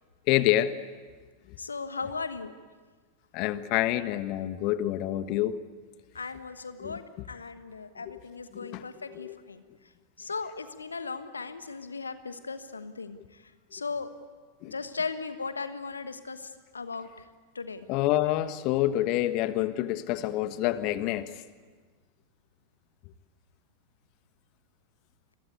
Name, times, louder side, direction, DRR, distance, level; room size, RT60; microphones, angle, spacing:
voice 1, 0.3-0.8 1.5-1.6 3.3-5.6 6.8-7.2 8.0-8.2 8.5-9.4 14.6-14.7 17.9-21.4, left 14 dB, 40° left, 13 dB, 1.3 m, -28 dB
voice 2, 1.6-2.5 6.1-9.6 10.2-13.4 13.7-14.1 14.7-17.3 17.5-17.9, left 4 dB, 75° left, 11 dB, 1.3 m, -37 dB
29.0 x 22.5 x 8.4 m, 1.5 s
figure-of-eight pair, 90°, 0 cm